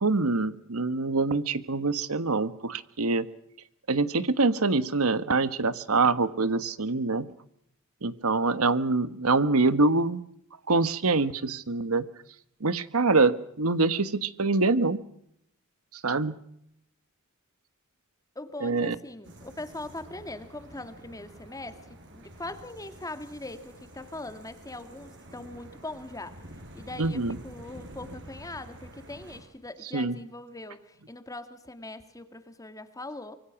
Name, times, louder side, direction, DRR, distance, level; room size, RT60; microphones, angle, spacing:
voice 1, 0.0-3.3 3.9-7.2 8.0-10.2 10.7-12.0 12.6-15.0 16.0-16.3 18.6-18.9 27.0-27.3 29.9-30.2, right 3 dB, 90° right, 14 dB, 1.4 m, -25 dB
voice 2, 18.4-33.4, left 2 dB, 15° left, 10 dB, 2.0 m, -41 dB
sound 1, 19.2-29.4, right 1 dB, 60° right, 6.7 m, -48 dB
25.0 x 24.0 x 6.0 m, 0.74 s
head